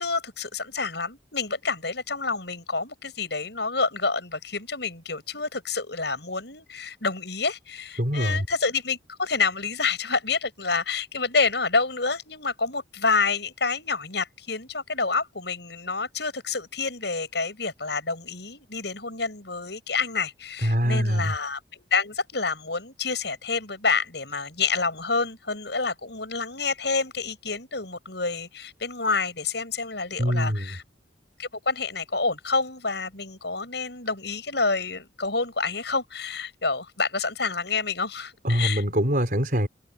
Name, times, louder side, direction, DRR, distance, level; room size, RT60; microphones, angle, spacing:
voice 1, 0.0-30.8 31.4-38.8, left 4 dB, 65° left, 7.1 m, -28 dB
voice 2, 8.0-8.5 20.6-21.3 30.2-30.7 38.4-39.7, equal, 45° right, 5.8 m, -23 dB
open air
head